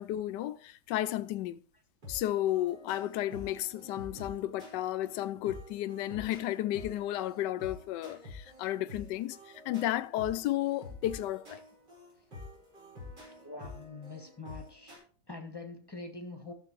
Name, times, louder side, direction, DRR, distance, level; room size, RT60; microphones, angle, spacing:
voice 1, 0.0-1.6 2.1-11.6, left 13 dB, 75° left, 1.2 m, -33 dB
sound 1, 2.0-15.0, left 2 dB, 65° right, 5.4 m, -48 dB
voice 2, 13.4-15.0 15.3-16.5, left 3 dB, 15° left, 1.2 m, -44 dB
14.5 x 6.8 x 3.1 m
omnidirectional pair, 2.1 m